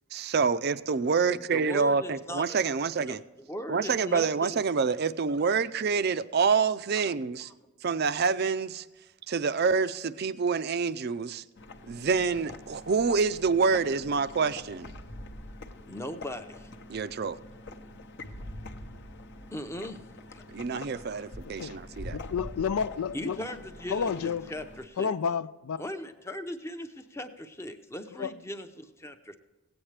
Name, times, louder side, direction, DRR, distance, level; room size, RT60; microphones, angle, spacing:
voice 1, 0.1-3.2 3.7-7.5 7.8-8.9 9.3-11.4 11.9-14.9 16.9-17.4 20.5-22.2, right 5 dB, 45° right, 0.4 m, -27 dB
voice 2, 1.5-2.6 3.1-3.2 3.5-4.6 15.9-16.7 18.2-18.3 19.5-20.0 20.3-20.4 20.7-21.0 23.1-25.1 25.8-29.4, left 1 dB, 10° left, 0.6 m, -39 dB
sound 1, 11.6-24.8, left 1 dB, 50° left, 0.8 m, -45 dB
voice 3, 22.1-23.4 23.9-24.5 25.0-25.8 28.2-28.3, left 6 dB, 80° left, 0.4 m, -30 dB
17.0 x 8.8 x 3.3 m
head